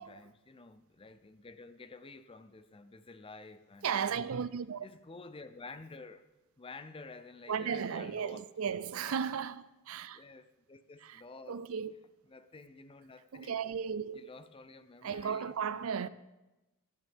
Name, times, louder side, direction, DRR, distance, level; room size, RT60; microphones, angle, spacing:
voice 1, 0.0-4.1 4.8-6.2 6.6-9.2 10.1-11.6 11.9-12.0 12.3-13.6 14.1-15.5 15.9-16.1, left 3 dB, 25° left, 0.5 m, -51 dB
voice 2, 3.8-4.9 7.5-10.2 11.5-11.9 13.3-14.2 15.0-16.1, right 7 dB, 65° right, 0.5 m, -35 dB
16.0 x 10.5 x 3.6 m
head